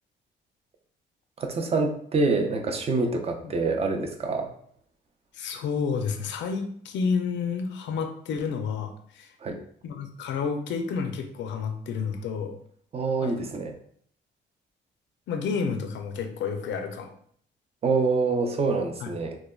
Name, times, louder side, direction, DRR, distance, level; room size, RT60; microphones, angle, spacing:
voice 1, 1.4-4.5 9.4-9.6 12.9-13.8 17.8-19.4, right 3 dB, 30° right, 4 dB, 0.5 m, -26 dB
voice 2, 5.3-9.3 9.8-12.6 13.2-13.3 15.3-17.1 19.0-19.1, left 5 dB, 65° left, 5 dB, 0.4 m, -30 dB
3.2 x 2.2 x 2.3 m, 0.62 s
cardioid pair, 90°, 20 cm